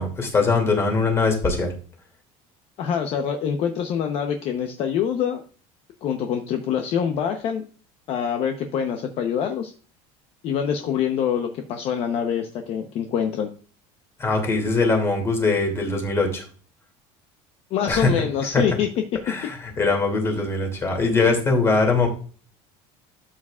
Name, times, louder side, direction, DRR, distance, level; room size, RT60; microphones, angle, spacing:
voice 1, 0.0-1.7 14.2-16.4 17.9-18.1 18.5-18.6 19.3-22.1, left 3 dB, 20° left, 2 dB, 2.6 m, -21 dB
voice 2, 2.8-5.4 6.0-7.6 8.1-9.7 10.4-13.5 17.7-18.9, left 8 dB, 45° left, 5 dB, 0.9 m, -25 dB
12.5 x 7.4 x 2.4 m, 0.40 s
cardioid pair, 165°, 14 cm